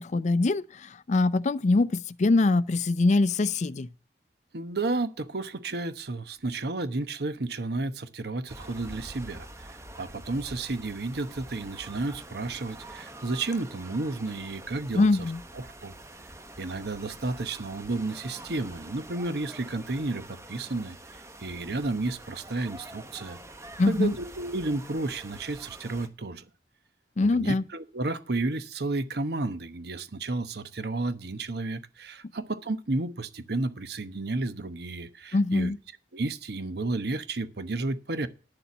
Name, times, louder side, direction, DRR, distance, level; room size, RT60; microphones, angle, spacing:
voice 1, 0.0-3.9 14.9-15.4 23.8-24.1 27.2-27.6 35.3-35.8, left 3 dB, 40° left, 0.4 m, -23 dB
voice 2, 4.5-15.1 15.5-15.9 16.6-23.4 23.9-26.5 27.2-35.7 36.1-38.3, right 2 dB, 65° right, 1.0 m, -32 dB
sound 1, 8.5-26.1, right 1 dB, 15° right, 1.0 m, -46 dB
9.9 x 7.0 x 7.1 m
head